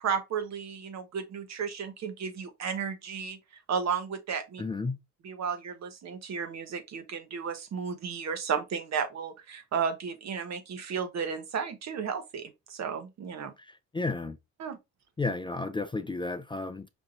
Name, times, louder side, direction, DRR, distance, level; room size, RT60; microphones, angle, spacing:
voice 1, 0.0-3.4 3.7-4.6 5.2-13.5 14.6-14.8, right 6 dB, 60° right, 1.1 m, -33 dB
voice 2, 4.6-5.0 13.6-14.4 15.2-16.9, left 3 dB, 15° left, 0.4 m, -33 dB
5.3 x 2.7 x 3.6 m
cardioid pair, 90°, 30 cm